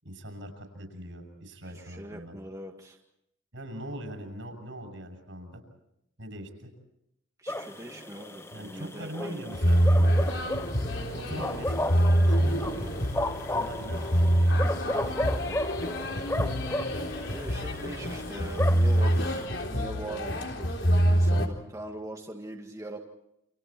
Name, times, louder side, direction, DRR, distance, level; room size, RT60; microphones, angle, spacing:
voice 1, 0.0-2.4 3.5-5.6 6.2-6.7 8.5-9.8 11.0-13.0 13.5-15.6 16.1-16.5, right 1 dB, 70° right, 4 dB, 7.0 m, -41 dB
voice 2, 1.6-3.0 7.4-9.5 11.2-11.5 17.2-20.7 21.0-23.0, right 1 dB, 15° right, 1 dB, 1.9 m, -41 dB
sound 1, 7.5-19.5, left 1 dB, 15° left, 0.8 m, -35 dB
sound 2, 9.5-21.5, equal, 70° left, 3.9 m, -26 dB
29.5 x 28.5 x 4.5 m, 0.80 s
head